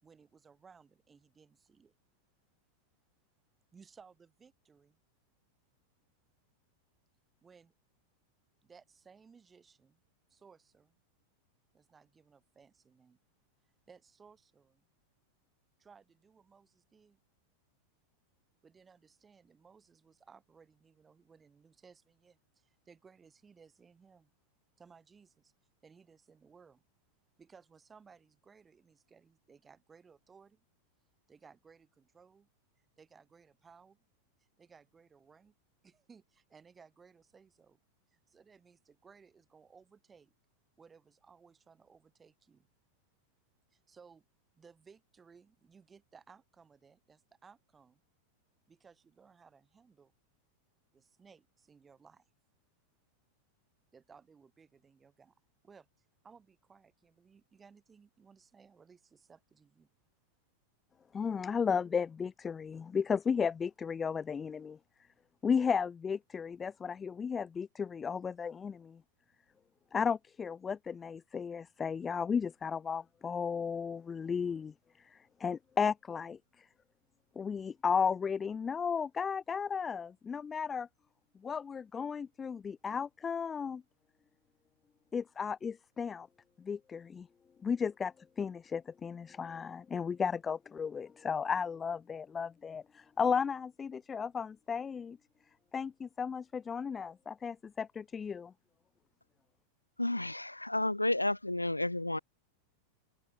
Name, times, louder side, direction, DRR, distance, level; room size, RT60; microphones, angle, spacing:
voice 1, 0.0-1.9 3.7-5.0 7.4-7.7 8.6-10.0 10.3-11.0 11.7-13.2 13.9-14.9 15.8-17.2 18.6-24.3 24.8-25.5 25.8-26.8 27.4-30.6 31.3-32.5 33.0-34.1 34.4-35.5 35.8-37.8 38.1-40.3 40.8-42.7 43.7-44.2 44.6-48.0 48.7-50.1 50.9-52.3 53.9-55.3 55.6-59.9, right 5 dB, 15° right, 5.2 m, -61 dB
voice 2, 61.1-64.8 65.4-69.0 69.9-74.7 75.1-76.7 77.4-80.9 81.4-83.8 85.1-86.3 86.6-87.3 87.6-95.2 95.7-98.5, left 6 dB, 20° left, 0.4 m, -34 dB
voice 3, 100.0-102.2, left 1 dB, 85° left, 0.6 m, -31 dB
figure-of-eight pair, 90°, 0 cm